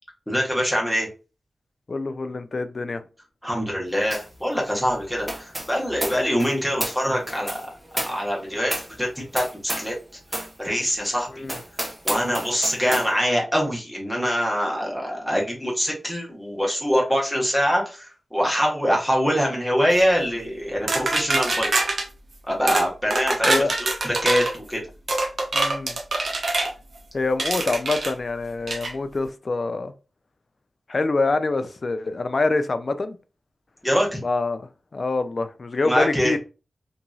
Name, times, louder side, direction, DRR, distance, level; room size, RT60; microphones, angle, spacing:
voice 1, 0.3-1.1 3.4-7.5 8.0-8.7 9.0-9.9 10.3-11.4 12.0-21.7 22.5-24.8 33.8-34.2 35.8-36.3, equal, 5° left, 1.2 m, -24 dB
voice 2, 1.9-3.0 6.1-6.3 11.4-11.5 23.4-23.7 25.5-26.0 27.1-29.9 30.9-33.2 34.2-34.6 34.9-36.4, left 3 dB, 50° left, 0.3 m, -25 dB
sound 1, 4.1-4.4 4.6-10.0 10.3-10.5 11.0-11.1 11.4-13.1, right 1 dB, 25° right, 0.9 m, -32 dB
sound 2, 20.9-22.1 22.7-22.9 23.1-24.5 25.1-26.7 27.4-28.1 28.7-28.9, right 2 dB, 65° right, 0.6 m, -24 dB
2.8 x 2.6 x 2.3 m
wide cardioid pair, 75°, 0 cm